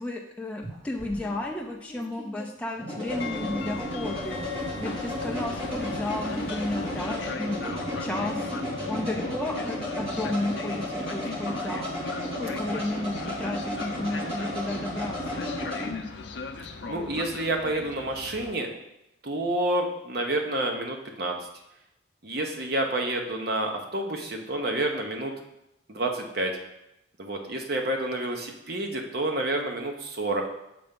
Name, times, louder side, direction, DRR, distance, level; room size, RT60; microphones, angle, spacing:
voice 1, 0.0-4.4 4.8-7.6 8.0-8.5 8.9-11.9 12.4-15.4, left 1 dB, 5° left, 0 dB, 0.4 m, -33 dB
sound 1, 0.6-15.9, left 1 dB, 30° right, 2.0 m, -33 dB
Train, 3.1-18.5, left 4 dB, 65° left, 0.5 m, -39 dB
sound 2, 3.3-13.8, right 1 dB, 80° right, 1.1 m, -49 dB
voice 2, 16.9-18.7 19.2-21.3 22.2-25.4 25.9-26.6 27.2-30.4, right 1 dB, 50° right, 3 dB, 0.8 m, -29 dB
6.9 x 3.4 x 5.2 m, 0.86 s
head